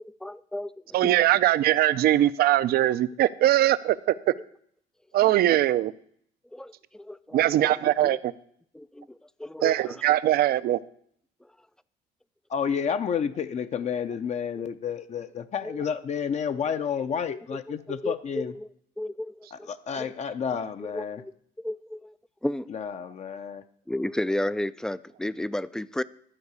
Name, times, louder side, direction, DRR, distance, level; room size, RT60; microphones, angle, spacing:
voice 1, 0.0-1.2 6.5-8.2 8.8-10.0 15.6-15.8 17.5-18.7 19.0-20.1 20.5-21.3 21.6-22.7 23.9-26.0, left 1 dB, 5° left, 17 dB, 0.3 m, -34 dB
voice 2, 0.9-4.3 5.1-5.9 7.3-8.3 9.6-10.8, right 13 dB, 65° right, 16 dB, 0.5 m, -21 dB
voice 3, 12.5-18.5 19.5-21.2 22.7-23.6, left 7 dB, 40° left, 10 dB, 0.6 m, -30 dB
12.0 x 4.8 x 8.1 m, 0.64 s
cardioid pair, 110°, 17 cm